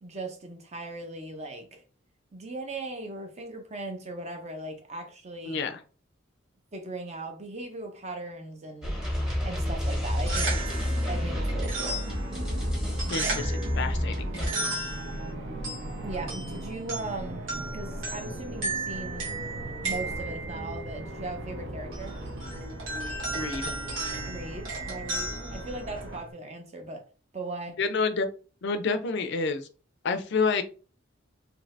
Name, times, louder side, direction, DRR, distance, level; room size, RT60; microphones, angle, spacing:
voice 1, 0.0-1.8 2.3-5.6 6.7-9.0 9.4-10.6 11.1-12.0 16.0-17.4 17.7-19.3 19.8-22.2 24.3-27.0 27.3-27.8, right 2 dB, 35° right, 0.7 m, -38 dB
voice 2, 5.5-5.8 13.1-14.3 23.3-23.8 27.8-28.3 28.6-29.7 30.0-30.6, left 4 dB, 60° left, 0.4 m, -28 dB
sound 1, 8.8-14.5, equal, 5° right, 0.9 m, -29 dB
sound 2, 10.1-26.3, right 2 dB, 85° right, 1.3 m, -36 dB
sound 3, 10.2-26.2, right 1 dB, 65° right, 0.9 m, -38 dB
2.7 x 2.6 x 3.2 m
head